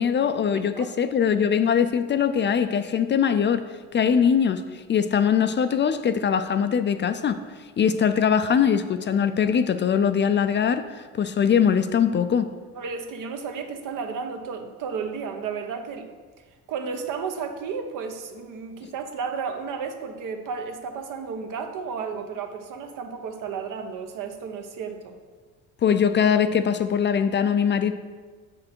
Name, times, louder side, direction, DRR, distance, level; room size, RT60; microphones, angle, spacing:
voice 1, 0.0-3.6 3.9-7.4 7.8-12.5 25.8-27.9, left 7 dB, 35° left, 10 dB, 0.4 m, -22 dB
voice 2, 12.8-16.1 16.7-25.2, right 5 dB, 65° right, 5 dB, 1.0 m, -33 dB
7.6 x 6.3 x 4.5 m, 1.5 s
cardioid pair, 110°, 33 cm